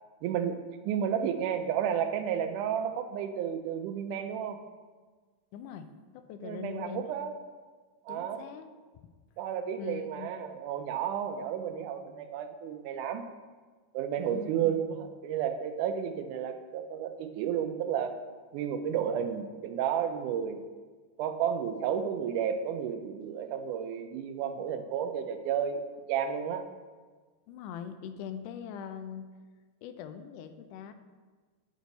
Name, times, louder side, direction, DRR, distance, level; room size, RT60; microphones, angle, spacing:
voice 1, 0.2-0.6 0.9-4.6 6.4-7.4 8.1-8.4 9.4-13.2 13.9-18.2 18.5-20.6 21.2-25.8 26.1-26.7, right 8 dB, 90° right, 8 dB, 2.1 m, -32 dB
voice 2, 5.5-5.9 6.1-7.1 8.1-8.7 9.8-10.3 14.2-15.1 27.5-29.3 29.8-30.9, left 8 dB, 85° left, 9 dB, 2.1 m, -42 dB
8.3 x 6.1 x 4.0 m, 1.4 s
omnidirectional pair, 3.5 m